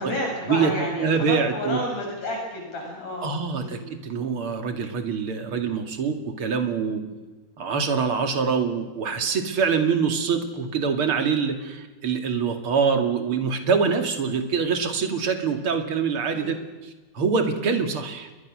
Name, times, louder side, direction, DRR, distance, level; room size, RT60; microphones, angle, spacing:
voice 1, 0.0-3.9 7.1-7.2 16.3-16.6, left 1 dB, 50° left, -1 dB, 8.3 m, -31 dB
voice 2, 1.0-1.8 3.2-7.0 7.6-18.3, right 5 dB, 40° right, 5 dB, 2.8 m, -25 dB
30.0 x 22.5 x 6.4 m, 1.2 s
omnidirectional pair, 4.0 m